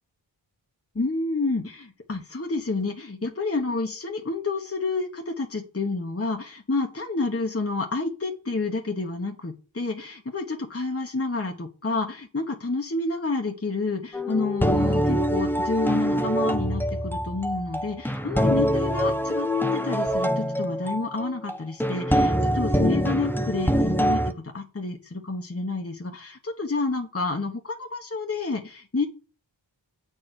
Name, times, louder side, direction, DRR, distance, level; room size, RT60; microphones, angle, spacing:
voice 1, 0.9-29.1, left 3 dB, 30° left, 3 dB, 1.2 m, -29 dB
sound 1, 14.1-24.3, equal, 5° left, 0.7 m, -24 dB
8.3 x 4.6 x 6.4 m, 0.36 s
wide cardioid pair, 45°, 46 cm